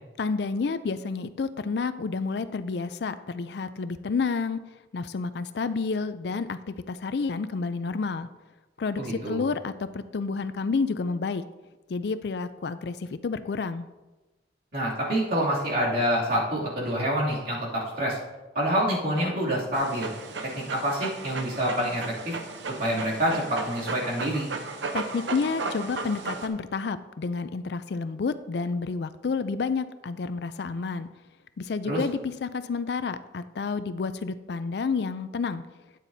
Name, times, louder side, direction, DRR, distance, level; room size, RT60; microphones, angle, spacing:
voice 1, 0.2-4.6 4.9-8.3 8.8-11.4 11.9-13.9 24.9-31.1 31.6-35.6, left 4 dB, 60° left, 12 dB, 0.4 m, -30 dB
voice 2, 9.0-9.4 14.7-18.2 18.5-20.1 20.7-22.3 22.8-24.5 31.8-32.0, equal, 50° right, -5 dB, 2.6 m, -27 dB
Dog, 19.7-26.5, right 3 dB, 80° right, 0.8 m, -35 dB
12.5 x 8.9 x 2.7 m, 1.1 s
head